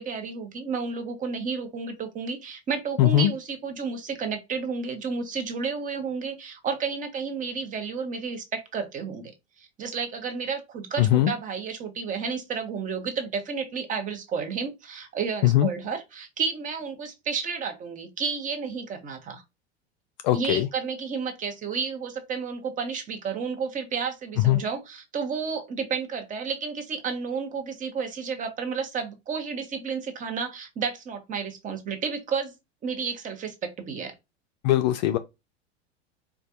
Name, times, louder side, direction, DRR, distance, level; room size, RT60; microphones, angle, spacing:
voice 1, 0.0-9.3 9.6-19.4 20.3-32.5 32.8-34.1, right 5 dB, 25° right, 0.9 m, -31 dB
voice 2, 3.0-3.3 11.0-11.3 15.4-15.7 20.2-20.7 24.4-24.6 34.6-35.2, left 13 dB, 45° left, 0.4 m, -20 dB
4.3 x 2.4 x 2.5 m
figure-of-eight pair, 85°, 34 cm